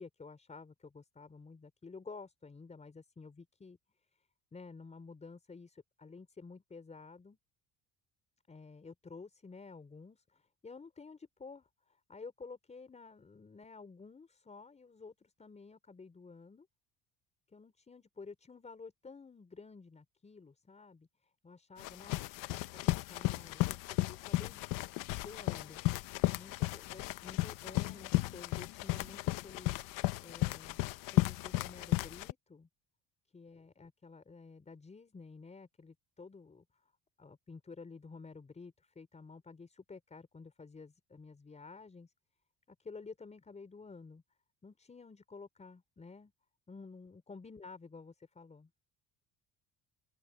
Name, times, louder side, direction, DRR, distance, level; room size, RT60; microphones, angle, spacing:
voice 1, 0.0-3.8 4.1-7.4 8.5-16.7 17.5-24.7 25.2-25.8 26.3-30.8 31.1-32.7 33.3-36.6 37.2-42.1 42.7-44.2 44.6-46.3 46.7-48.7, left 4 dB, 20° left, 4.9 m, -52 dB
sound 1, 21.8-32.3, left 20 dB, 90° left, 1.0 m, -34 dB
open air
cardioid pair, 125°, 32 cm